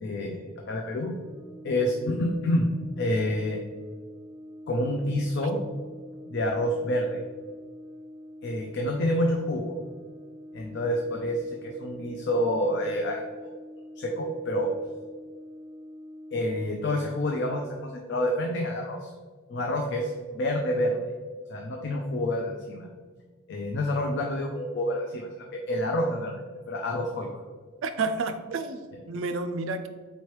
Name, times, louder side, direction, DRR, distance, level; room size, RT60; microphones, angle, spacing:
voice 1, 0.0-1.1 1.6-2.7 3.0-3.6 4.7-5.6 6.3-7.2 8.4-9.8 10.5-13.2 14.0-14.7 16.3-19.1 19.5-21.1 21.5-22.9 23.5-26.4 26.7-27.3, left 1 dB, 55° left, 2 dB, 0.4 m, -28 dB
Brass instrument, 1.1-17.5, left 1 dB, 70° left, 0.9 m, -45 dB
voice 2, 27.8-29.9, right 3 dB, 65° right, 8 dB, 0.4 m, -30 dB
4.2 x 3.0 x 3.1 m, 1.5 s
head